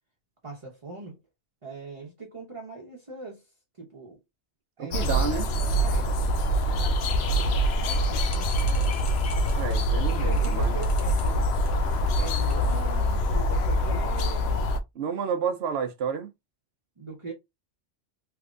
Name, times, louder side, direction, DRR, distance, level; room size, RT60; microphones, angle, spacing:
voice 1, 0.4-1.2 1.6-4.2 4.8-6.1 6.7-7.5 7.8-8.5 9.9-11.5 12.1-14.7 17.0-17.3, right 3 dB, 30° right, 0.8 m, -41 dB
voice 2, 4.8-5.5 9.5-10.8 15.0-16.3, right 7 dB, 70° right, 0.9 m, -30 dB
sound 1, 4.9-14.8, equal, 70° left, 0.8 m, -24 dB
sound 2, 7.1-13.2, equal, 30° left, 1.0 m, -47 dB
3.4 x 2.9 x 2.4 m
omnidirectional pair, 1.2 m